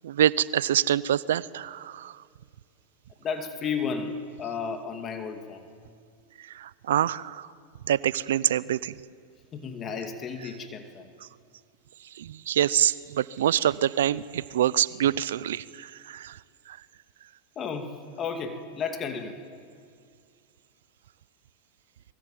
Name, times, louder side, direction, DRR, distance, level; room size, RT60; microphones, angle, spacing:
voice 1, 0.0-2.1 6.4-7.5 7.9-8.9 12.2-16.4 16.7-16.8, right 11 dB, 80° right, 20 dB, 0.6 m, -26 dB
voice 2, 3.2-5.6 9.5-11.1 17.6-19.3, left 6 dB, 30° left, 5 dB, 2.4 m, -33 dB
26.0 x 22.5 x 9.1 m, 2.1 s
hypercardioid pair, 105°, 0 cm